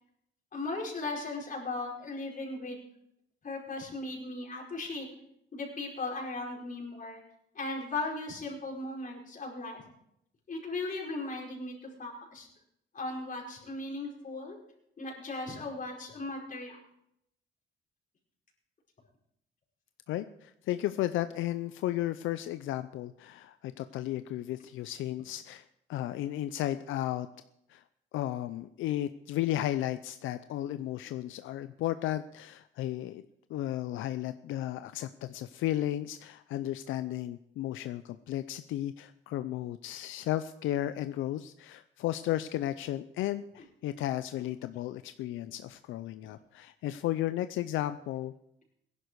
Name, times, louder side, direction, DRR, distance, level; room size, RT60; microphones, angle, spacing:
voice 1, 0.5-2.8 3.4-5.1 5.5-7.2 7.5-9.8 10.5-12.5 12.9-14.6 15.0-16.8 46.2-46.3, left 2 dB, 40° left, -1 dB, 4.9 m, -37 dB
voice 2, 20.1-25.6 25.9-27.3 27.7-27.8 28.1-33.2 33.5-48.3, left 13 dB, 85° left, 11 dB, 0.6 m, -34 dB
17.5 x 11.0 x 4.7 m, 0.78 s
cardioid pair, 90°, 20 cm